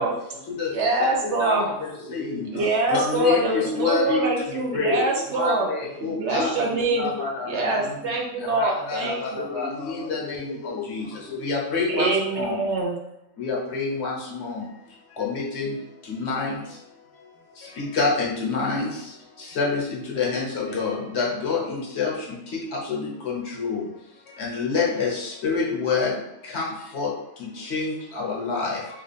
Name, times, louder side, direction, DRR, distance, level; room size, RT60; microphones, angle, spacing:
voice 1, 0.0-0.8 1.9-3.1 4.6-4.7 5.8-8.1 9.0-11.5, left 4 dB, 80° left, 1 dB, 1.1 m, -38 dB
voice 2, 0.7-1.7 2.5-5.7 6.0-7.1 7.5-9.4 11.9-13.0, right 2 dB, 65° right, -1 dB, 0.9 m, -24 dB
voice 3, 1.4-1.7 2.1-2.4 2.9-4.4 4.7-5.0 5.3-6.5 7.0-7.5 8.5-9.7 10.1-11.0 11.4-12.1 12.4-12.5 13.4-14.6 15.2-15.7 16.1-16.5 17.8-18.9 19.6-22.1 22.9-23.8 24.4-26.1 26.5-26.7 26.9-27.1 27.7-27.8 28.1-28.8, left 4 dB, 55° left, -3 dB, 1.1 m, -26 dB
3.1 x 2.3 x 4.0 m, 0.83 s
omnidirectional pair, 1.4 m